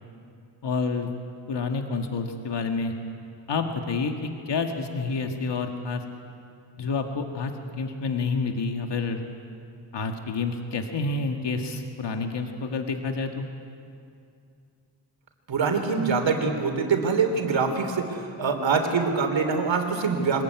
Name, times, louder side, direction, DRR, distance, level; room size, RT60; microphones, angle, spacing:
voice 1, 0.6-1.1 1.5-2.9 3.5-6.0 6.8-9.2 9.9-13.5, left 4 dB, 70° left, 4 dB, 2.0 m, -29 dB
voice 2, 15.5-20.4, right 5 dB, 85° right, 5 dB, 3.5 m, -24 dB
24.5 x 20.5 x 9.5 m, 2.5 s
wide cardioid pair, 140°, 44 cm